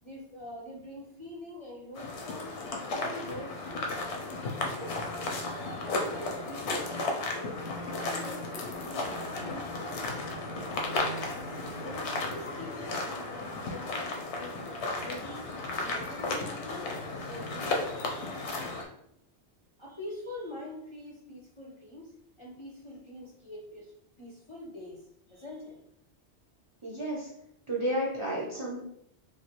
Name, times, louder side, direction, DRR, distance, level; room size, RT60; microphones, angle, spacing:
voice 1, 0.0-2.5 2.8-4.4 4.7-5.5 5.8-7.1 7.3-7.6 8.0-10.8 11.8-18.0 19.8-22.1 22.4-25.8, left 1 dB, 35° left, -5 dB, 0.5 m, -45 dB
sound 1, 1.9-18.8, left 2 dB, 80° left, 0.9 m, -34 dB
voice 2, 26.8-27.3 27.7-28.8, right 1 dB, 35° right, -4 dB, 0.5 m, -31 dB
3.2 x 2.3 x 2.9 m, 0.73 s
omnidirectional pair, 1.2 m